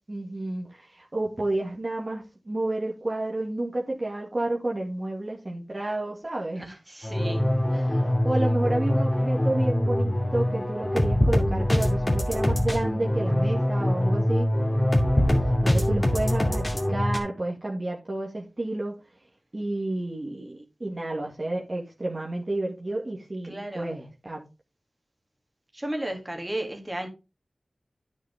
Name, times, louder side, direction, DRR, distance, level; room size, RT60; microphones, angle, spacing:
voice 1, 0.1-6.7 7.7-14.5 15.4-18.9 19.5-24.4, right 2 dB, 35° right, 2.3 m, -30 dB
voice 2, 6.6-7.6 23.4-23.9 25.7-27.1, right 1 dB, 20° right, 2.8 m, -34 dB
sound 1, 7.0-17.2, left 1 dB, 25° left, 2.5 m, -24 dB
9.6 x 6.4 x 3.7 m
wide cardioid pair, 60°, 0 cm